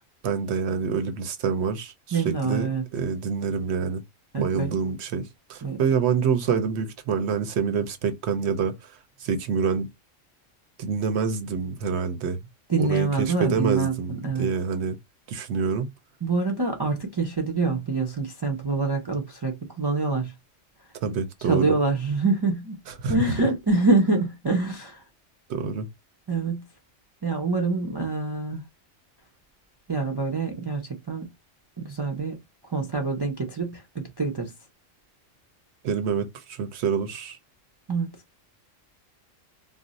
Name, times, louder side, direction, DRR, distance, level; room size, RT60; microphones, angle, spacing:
voice 1, 0.2-2.7 2.9-4.0 4.4-9.9 10.8-12.4 12.8-15.0 15.3-15.9 21.0-21.7 22.9-23.2 25.5-25.9 35.8-37.4, right 6 dB, 65° right, 0.8 m, -27 dB
voice 2, 2.1-2.8 4.3-4.7 5.6-5.8 12.7-14.5 16.2-20.3 21.5-22.8 23.1-25.0 26.3-26.6 27.2-28.6 29.9-31.3 31.8-32.4 32.7-34.5 37.9-38.1, right 3 dB, 35° right, 0.4 m, -25 dB
2.5 x 2.0 x 3.8 m
omnidirectional pair, 1.3 m